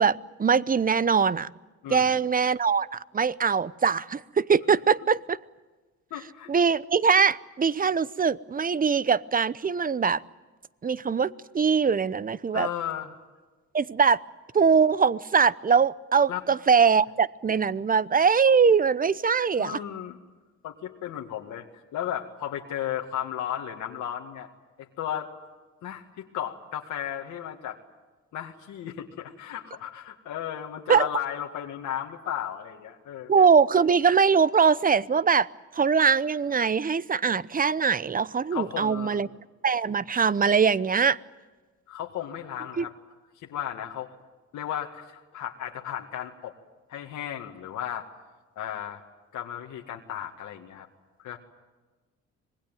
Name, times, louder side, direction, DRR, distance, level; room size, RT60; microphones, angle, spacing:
voice 1, 0.0-1.5 1.9-5.4 6.5-10.2 10.8-11.3 11.5-12.7 13.7-14.2 14.5-19.8 30.9-31.1 33.3-35.5 35.7-39.3 39.6-41.2 42.8-42.9, right 6 dB, 30° right, 19 dB, 0.8 m, -22 dB
voice 2, 1.8-2.2 6.1-6.5 12.5-13.2 16.3-16.4 19.6-20.2 20.6-21.7 21.9-24.5 24.8-25.3 25.8-27.8 28.3-33.3 38.5-39.3 41.9-42.9 43.4-44.1 44.5-46.5 46.9-48.1 48.6-49.0 49.3-50.9 51.2-51.4, left 10 dB, 80° left, 1 dB, 2.1 m, -34 dB
26.0 x 20.5 x 9.2 m, 1.3 s
cardioid pair, 90°, 30 cm